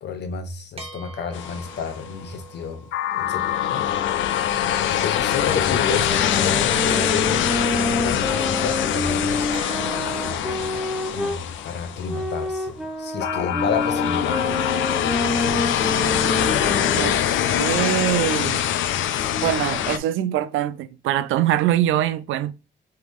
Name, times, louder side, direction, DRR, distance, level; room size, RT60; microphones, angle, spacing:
voice 1, 0.0-2.9 3.2-3.9 4.2-4.3 4.9-7.5 8.0-9.6 10.2-10.8 11.1-14.5 16.7-17.1, left 5 dB, 60° left, 0.9 m, -31 dB
sound 1, 0.8-4.5 9.5-13.9, right 3 dB, 30° right, 1.1 m, -44 dB
sound 2, 1.3-2.1 2.9-12.5 13.2-20.0, left 10 dB, 75° left, 0.5 m, -23 dB
sound 3, 5.9-11.4 12.0-17.3, equal, ahead, 0.6 m, -28 dB
voice 2, 17.5-18.6 19.4-22.5, right 12 dB, 85° right, 0.4 m, -23 dB
3.9 x 3.3 x 3.5 m
cardioid pair, 90°, 20 cm